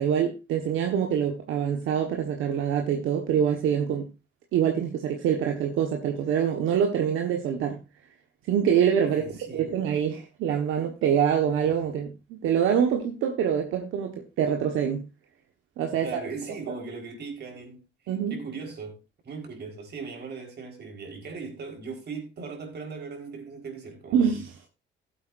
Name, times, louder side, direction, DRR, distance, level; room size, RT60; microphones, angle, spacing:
voice 1, 0.0-4.1 4.5-7.8 8.5-15.1 15.8-16.2 18.1-18.4 24.1-24.5, right 8 dB, 90° right, 1.4 m, -25 dB
voice 2, 9.0-9.7 16.0-17.8 18.3-24.3, right 4 dB, 55° right, 4.5 m, -38 dB
15.5 x 8.3 x 2.6 m
cardioid pair, 90°, 20 cm